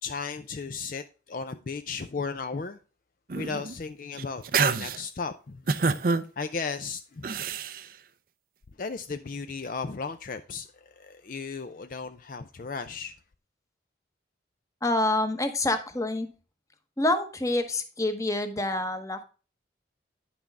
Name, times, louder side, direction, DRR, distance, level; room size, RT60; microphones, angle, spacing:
voice 1, 0.0-2.8 3.3-5.8 6.4-7.4 8.8-13.1, left 4 dB, 45° left, 0.4 m, -35 dB
sound 1, 3.3-3.7 4.2-5.0 5.7-6.2 7.2-7.8, right 4 dB, 50° right, 0.5 m, -26 dB
voice 2, 14.8-16.3 17.0-19.2, left 2 dB, 15° left, 0.9 m, -27 dB
10.0 x 6.1 x 3.4 m
head